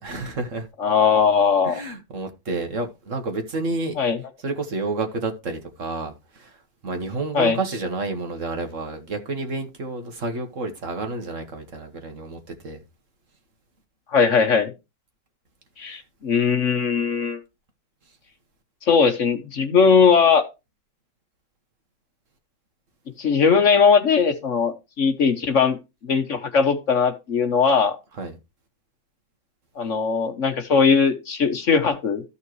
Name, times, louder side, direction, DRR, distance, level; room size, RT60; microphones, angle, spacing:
voice 1, 0.0-0.7 1.6-4.0 4.4-6.6 6.8-12.8 28.2-28.4, right 3 dB, 55° right, 1.7 m, -30 dB
voice 2, 0.8-1.8 4.0-4.2 7.3-7.6 14.1-14.7 15.8-17.4 18.9-20.4 23.2-25.8 26.0-28.0 29.8-32.2, left 6 dB, 55° left, 1.3 m, -19 dB
13.5 x 5.7 x 3.1 m
omnidirectional pair, 1.7 m